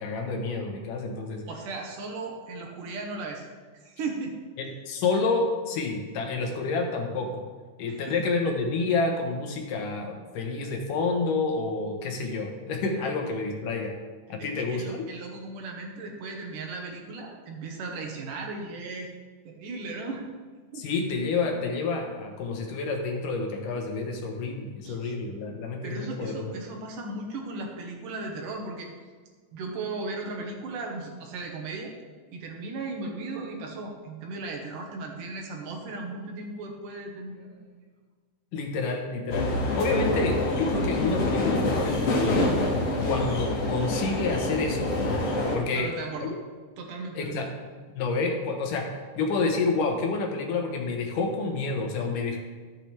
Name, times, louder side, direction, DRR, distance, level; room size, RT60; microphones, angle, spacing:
voice 1, 0.0-1.4 4.6-7.4 7.8-13.9 14.3-15.1 20.8-26.5 38.5-42.5 43.0-45.2 45.5-45.9 46.2-46.3 47.1-47.5 48.0-52.4, left 3 dB, 85° left, 2 dB, 3.0 m, -29 dB
voice 2, 1.5-3.5 3.8-4.4 7.9-8.2 13.0-13.1 14.4-19.1 19.4-20.3 20.7-20.9 24.8-25.1 25.8-28.9 29.5-31.9 32.3-37.8 45.7-46.3 46.8-47.5, right 3 dB, 85° right, 1 dB, 3.0 m, -36 dB
sound 1, 39.3-45.6, left 2 dB, 55° left, 2.6 m, -26 dB
13.5 x 8.2 x 3.5 m, 1.5 s
omnidirectional pair, 3.6 m